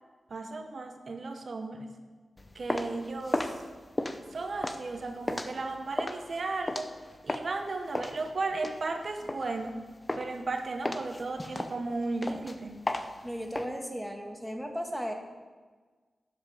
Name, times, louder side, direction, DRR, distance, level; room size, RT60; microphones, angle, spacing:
voice 1, 0.3-1.9 2.5-3.5 4.3-6.9 7.2-9.8 10.2-12.9, right 3 dB, 65° right, 5 dB, 0.8 m, -35 dB
sound 1, 2.4-7.6 7.9-9.8 10.1-10.5 10.8-13.6, left 1 dB, 25° left, 0.8 m, -34 dB
voice 2, 13.2-15.1, equal, ahead, 3 dB, 1.5 m, -35 dB
10.5 x 7.2 x 4.8 m, 1.4 s
cardioid pair, 45°, 0 cm